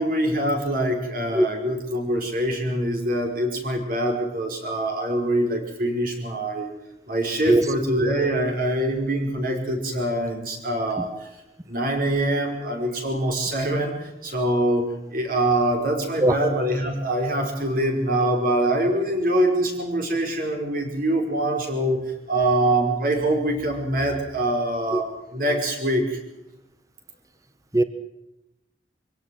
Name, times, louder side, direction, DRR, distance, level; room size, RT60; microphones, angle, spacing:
voice 1, 0.0-6.7 7.1-11.3 11.7-14.9 15.1-22.0 22.3-26.2, right 1 dB, 55° right, 3 dB, 5.2 m, -24 dB
voice 2, 1.3-1.5 7.5-7.6 16.2-16.4 24.9-25.0 27.7-27.8, right 1 dB, 20° right, 11 dB, 1.2 m, -18 dB
24.0 x 17.5 x 7.8 m, 0.87 s
head